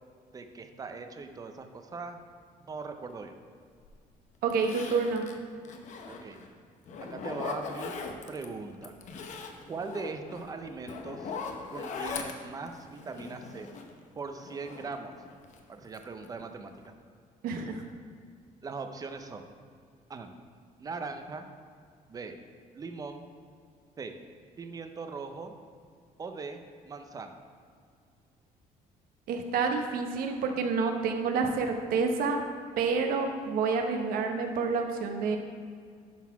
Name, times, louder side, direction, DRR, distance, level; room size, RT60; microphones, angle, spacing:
voice 1, 0.3-2.2 2.6-3.3 6.1-6.4 7.1-8.0 8.3-8.9 9.7-11.3 11.7-13.7 14.2-15.1 15.7-16.7 18.6-19.4 20.1-20.3 20.8-21.5 22.1-22.4 22.7-23.3 24.0-24.2 24.6-25.5 26.2-27.3, right 4 dB, 25° right, 6 dB, 0.6 m, -40 dB
Zipper (clothing), 3.8-3.9 4.5-6.5 6.9-8.5 8.8-14.0 14.4-15.6 15.9-16.4 16.7-16.9, left 4 dB, 55° left, 0.8 m, -40 dB
voice 2, 4.4-5.3 17.4-17.8 29.3-32.4 32.8-35.4, right 4 dB, 75° right, 4 dB, 1.0 m, -28 dB
11.5 x 4.0 x 4.7 m, 2.1 s
cardioid pair, 140°, 15 cm